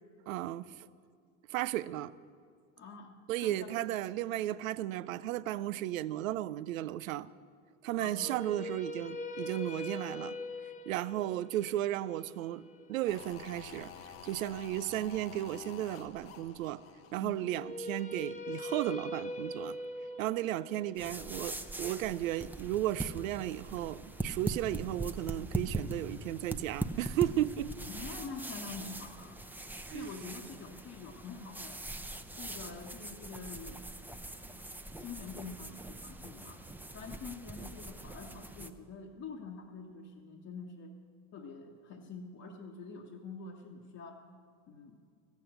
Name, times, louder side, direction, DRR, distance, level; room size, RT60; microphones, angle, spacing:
voice 1, 0.3-0.9 1.5-2.1 3.3-7.3 7.8-10.4 10.9-12.6 12.9-13.9 14.2-16.8 17.1-19.8 20.2-27.7 29.9-30.1, right 13 dB, 80° right, 17 dB, 0.5 m, -34 dB
voice 2, 2.8-3.7 8.0-8.4 17.2-17.5 27.8-29.4 29.9-31.8 32.4-33.8 34.5-34.6 35.0-36.6 36.9-41.0 41.3-44.2 44.7-45.0, left 4 dB, 40° left, 0 dB, 1.3 m, -46 dB
sound 1, 8.1-14.2 17.4-23.5, left 1 dB, 20° left, 1.2 m, -43 dB
sound 2, 13.1-18.2 18.5-18.6, left 7 dB, 75° left, 1.1 m, -51 dB
sound 3, 21.0-38.7, right 2 dB, 5° right, 0.8 m, -42 dB
14.0 x 8.4 x 7.8 m, 2.2 s
hypercardioid pair, 65°, 40 cm